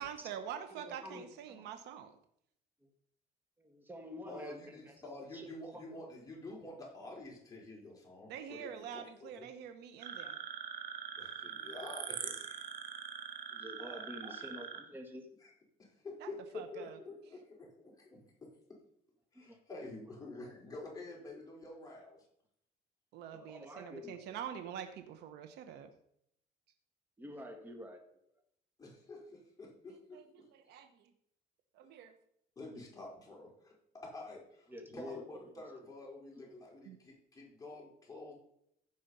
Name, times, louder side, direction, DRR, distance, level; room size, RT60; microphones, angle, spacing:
voice 1, 0.0-2.2 8.3-10.3 16.2-16.3 16.5-17.0 23.1-25.9 30.1-30.2 30.5-31.0 31.7-32.1 36.8-37.0, right 9 dB, 85° right, 8 dB, 1.0 m, -45 dB
voice 2, 0.7-1.7 2.8-2.9 3.6-5.8 13.5-15.3 19.4-19.6 23.3-24.4 27.2-28.0 34.7-35.5 36.4-36.5, left 1 dB, 10° right, 3 dB, 1.8 m, -49 dB
voice 3, 4.3-9.5 11.2-12.6 13.8-14.4 15.4-15.5 15.8-18.5 19.3-22.2 28.8-30.5 32.6-38.3, left 2 dB, 20° left, -3 dB, 4.6 m, -49 dB
sound 1, 10.0-14.8, right 7 dB, 60° right, 1.5 m, -43 dB
15.0 x 5.1 x 5.5 m, 0.72 s
cardioid pair, 110°, 17 cm